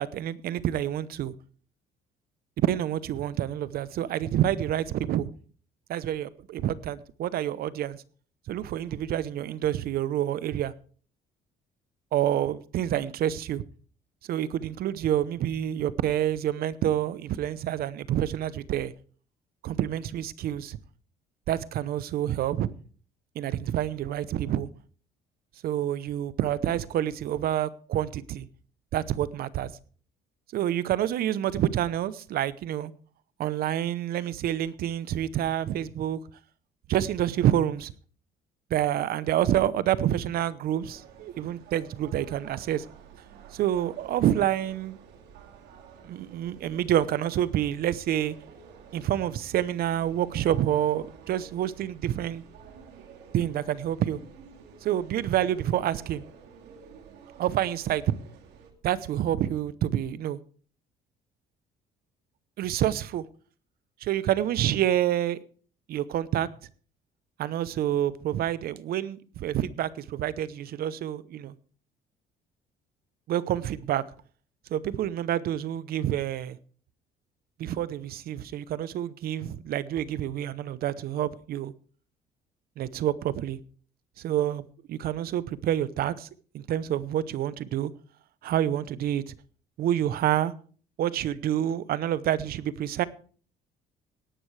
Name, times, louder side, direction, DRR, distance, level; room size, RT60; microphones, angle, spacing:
voice 1, 0.0-1.3 2.6-5.3 5.9-8.0 8.5-10.7 12.1-13.6 14.3-18.9 19.6-20.8 21.5-22.7 23.4-24.7 25.6-28.5 28.9-29.7 30.5-32.9 33.4-36.2 36.9-37.9 38.7-42.8 43.5-45.0 46.0-48.3 48.9-52.4 53.3-54.2 54.8-56.2 57.4-58.1 58.8-60.4 62.6-63.3 64.0-65.4 65.9-66.5 67.4-71.5 73.3-74.0 74.7-76.6 77.6-81.7 82.8-83.6 84.2-84.6 84.9-86.3 86.5-87.9 88.4-89.3 89.8-90.5 91.0-93.0, right 11 dB, 65° right, 0.8 m, -28 dB
sound 1, 40.8-58.7, right 6 dB, 85° right, 2.6 m, -50 dB
18.0 x 11.0 x 3.3 m
cardioid pair, 110°, 17 cm